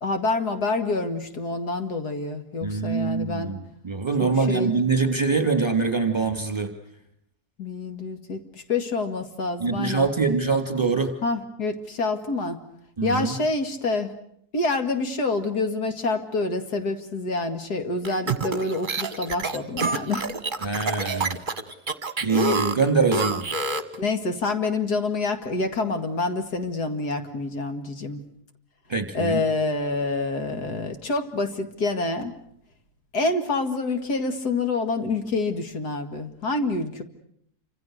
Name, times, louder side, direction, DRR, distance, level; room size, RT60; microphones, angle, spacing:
voice 1, 0.0-3.5 4.2-4.7 7.6-10.1 11.2-12.6 13.0-14.1 14.5-20.3 24.0-28.2 29.1-32.3 33.1-37.0, left 3 dB, 80° left, 7 dB, 2.6 m, -27 dB
voice 2, 2.6-6.7 9.6-11.1 13.0-13.4 20.6-21.4 22.2-23.5 28.9-29.4, right 4 dB, 15° right, 7 dB, 2.9 m, -24 dB
sound 1, 18.0-24.0, right 3 dB, 30° right, 1.5 m, -27 dB
28.5 x 26.5 x 6.5 m, 0.69 s
omnidirectional pair, 1.7 m